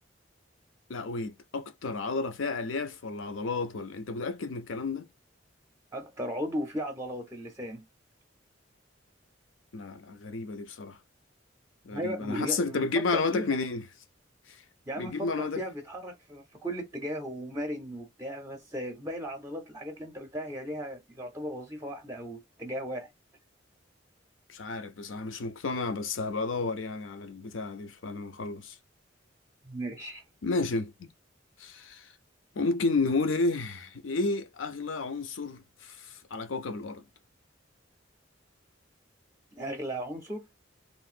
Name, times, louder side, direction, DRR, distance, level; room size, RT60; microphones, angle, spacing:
voice 1, 0.9-5.1 9.7-11.0 11.8-13.9 14.5-14.6 15.0-15.6 24.5-28.8 30.4-31.1 31.6-32.1 32.5-37.0, left 3 dB, 85° left, 0.6 m, -31 dB
voice 2, 5.9-7.8 11.9-13.6 14.9-23.1 29.6-30.2 39.5-40.5, equal, 15° right, 0.5 m, -36 dB
3.1 x 2.5 x 2.4 m
head